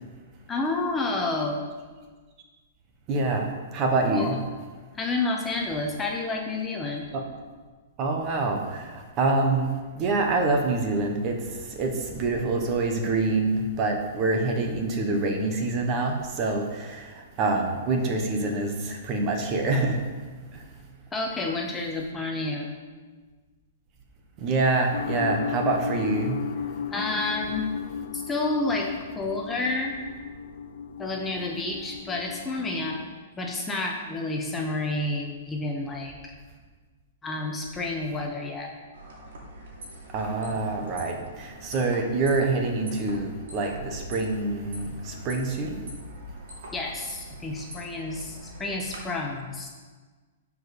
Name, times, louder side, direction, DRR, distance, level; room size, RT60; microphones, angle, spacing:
voice 1, 0.5-1.7 4.1-4.4 5.0-7.0 21.1-22.7 26.9-27.7 28.1-28.9 29.1-29.9 31.0-33.0 33.4-36.3 37.2-38.7 46.7-49.7, left 2 dB, 10° left, 0 dB, 0.8 m, -30 dB
voice 2, 3.1-4.4 7.1-7.2 8.0-9.7 10.0-11.4 11.7-20.0 20.5-20.6 24.4-26.4 40.1-45.8, right 3 dB, 30° right, 3 dB, 1.3 m, -26 dB
sound 1, 24.9-33.1, left 7 dB, 85° left, 0.7 m, -35 dB
sound 2, 38.9-49.0, right 1 dB, 75° right, 2.6 m, -43 dB
10.5 x 4.9 x 5.2 m, 1.4 s
hypercardioid pair, 155°, 0 cm